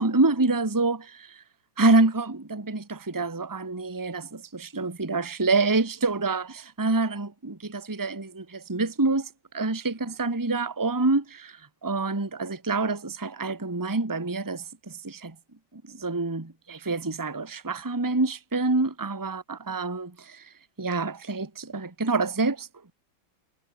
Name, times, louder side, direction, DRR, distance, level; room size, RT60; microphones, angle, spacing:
voice 1, 0.0-1.4 1.8-15.3 15.7-22.9, right 3 dB, 10° right, 1.5 m, -27 dB
omnidirectional pair, 2.2 m